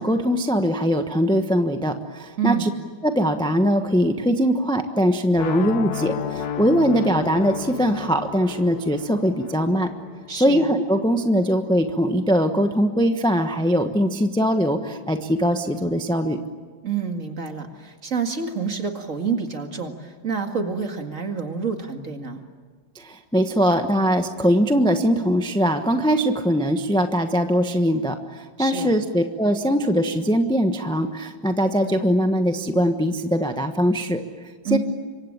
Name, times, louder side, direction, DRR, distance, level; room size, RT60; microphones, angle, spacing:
voice 1, 0.0-2.7 3.0-9.9 10.3-16.4 22.9-34.2 34.7-34.8, equal, 5° left, 6 dB, 0.9 m, -21 dB
voice 2, 2.4-2.7 10.3-10.7 16.8-22.4 28.6-28.9 34.6-34.8, right 6 dB, 45° right, 5 dB, 2.3 m, -28 dB
sound 1, 5.4-11.3, left 8 dB, 60° left, 1.5 m, -33 dB
26.5 x 24.0 x 8.8 m, 1.5 s
omnidirectional pair, 2.0 m